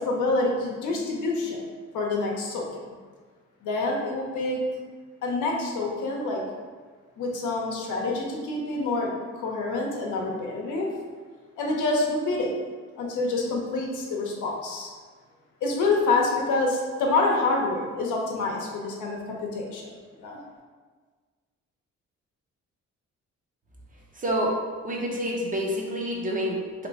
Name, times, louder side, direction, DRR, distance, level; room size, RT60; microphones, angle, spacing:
voice 1, 0.0-1.6 1.9-2.8 3.6-4.6 5.2-6.4 7.2-10.9 11.6-12.5 13.0-14.9 15.6-19.9 20.2-20.4, left 3 dB, 80° left, -1 dB, 0.8 m, -27 dB
voice 2, 24.2-24.6 24.8-26.9, equal, 25° right, -2 dB, 0.7 m, -28 dB
2.9 x 2.2 x 4.0 m, 1.5 s
cardioid pair, 90°, 30 cm